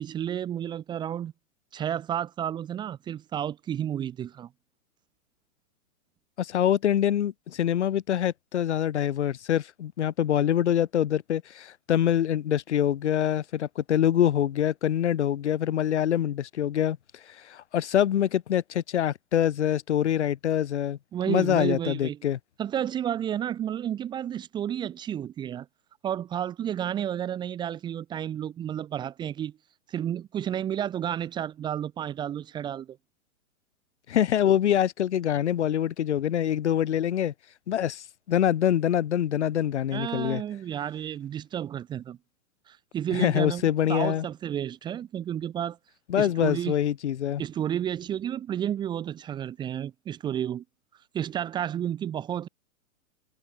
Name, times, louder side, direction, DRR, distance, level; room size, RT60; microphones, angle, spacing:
voice 1, 0.0-1.3 1.7-4.5 21.1-22.2 22.6-25.7 26.0-29.5 29.9-33.0 39.9-42.2 42.7-45.8 46.2-46.7 47.4-50.6 51.1-52.5, right 10 dB, 10° right, 3.0 m, -31 dB
voice 2, 6.4-17.0 17.4-21.0 21.3-22.4 34.1-37.3 37.7-40.4 43.1-44.3 46.1-47.4, left 10 dB, 50° left, 5.5 m, -25 dB
hypercardioid pair, 180°, 44 cm